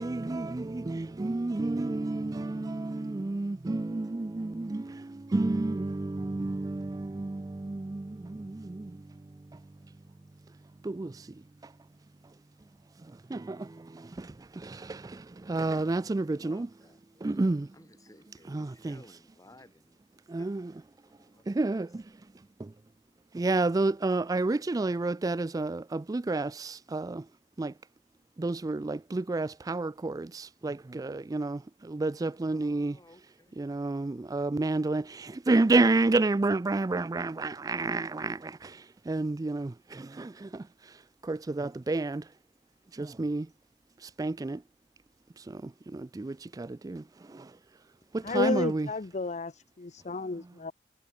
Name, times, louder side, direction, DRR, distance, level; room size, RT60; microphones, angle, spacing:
voice 1, 0.0-4.8 5.3-7.4 7.7-8.0 11.0-11.1 15.5-16.7 17.2-17.6 18.5-18.9 20.3-20.6 21.6-21.9 23.4-27.1 27.6-27.7 28.4-31.6 32.0-32.9 33.6-35.0 35.5-38.4 39.1-39.7 41.3-42.2 43.2-43.4 44.2-44.6 46.2-46.3 46.9-47.0 48.3-48.9, right 2 dB, 20° right, 0.3 m, -29 dB
voice 2, 16.1-17.4 17.7-21.5 24.7-25.1 32.5-33.8, left 1 dB, 20° left, 7.3 m, -58 dB
voice 3, 48.2-50.7, left 3 dB, 40° left, 0.7 m, -31 dB
head